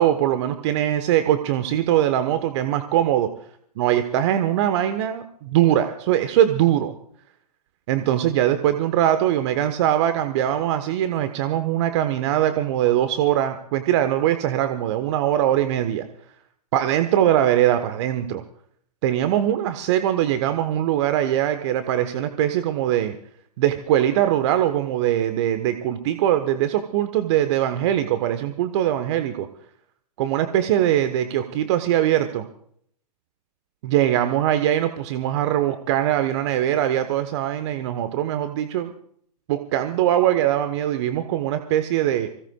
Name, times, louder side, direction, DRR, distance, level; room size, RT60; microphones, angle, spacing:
voice 1, 0.0-3.3 3.8-6.9 7.9-16.1 16.7-18.4 19.0-23.2 23.6-29.5 30.2-32.5 33.8-38.9 39.5-42.3, right 11 dB, 45° right, 9 dB, 1.1 m, -21 dB
26.0 x 17.0 x 2.3 m, 0.63 s
figure-of-eight pair, 110°, 21 cm